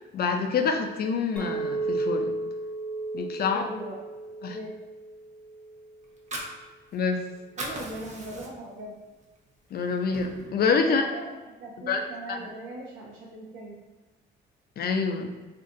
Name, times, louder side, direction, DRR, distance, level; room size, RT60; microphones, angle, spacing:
voice 1, 0.0-2.3 3.1-3.6 4.4-4.6 6.9-7.2 9.7-11.0 11.9-12.0 12.3-12.4 14.8-15.3, left 5 dB, 50° left, 5 dB, 0.4 m, -26 dB
Chink clink, 1.4-5.8, right 2 dB, 5° left, 0.6 m, -33 dB
voice 2, 3.4-4.0 4.5-4.7 7.6-8.9 10.8-13.8, right 1 dB, 90° right, -4 dB, 0.6 m, -40 dB
Fire, 6.0-7.2 7.4-8.8 9.2-9.4 9.8-10.7, right 1 dB, 35° right, 0.6 m, -38 dB
2.5 x 2.2 x 3.7 m, 1.2 s
cardioid pair, 90°, 20 cm